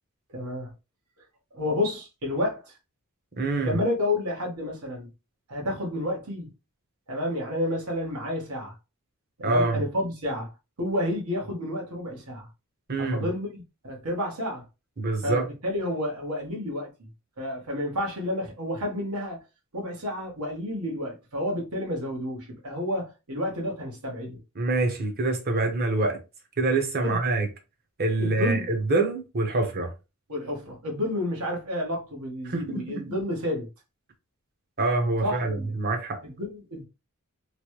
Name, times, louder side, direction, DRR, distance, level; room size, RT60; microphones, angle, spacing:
voice 1, 0.3-0.7 1.5-2.8 3.6-5.1 5.5-6.5 7.1-8.7 9.4-10.5 10.8-12.5 13.0-14.6 15.2-17.1 17.4-19.4 19.7-24.4 27.0-27.2 28.2-28.7 30.3-33.7 35.2-35.7 36.2-36.9, left 1 dB, 80° right, 1.2 m, -30 dB
voice 2, 3.4-3.8 9.4-9.8 12.9-13.3 15.0-15.5 24.6-26.2 26.6-27.5 28.0-29.9 32.4-33.2 34.8-36.2, right 2 dB, 45° right, 0.8 m, -25 dB
3.2 x 2.1 x 3.0 m
head